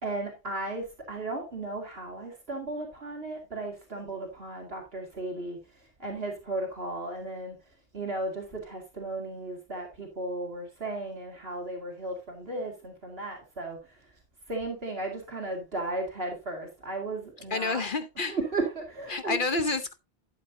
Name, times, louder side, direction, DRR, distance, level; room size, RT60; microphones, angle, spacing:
voice 1, 0.0-7.6 7.9-14.0 14.5-17.8 18.2-19.4, right 2 dB, 70° right, 2.5 m, -35 dB
voice 2, 17.5-18.4 19.1-19.9, left 3 dB, 55° left, 1.0 m, -29 dB
12.0 x 8.2 x 2.7 m
omnidirectional pair, 1.1 m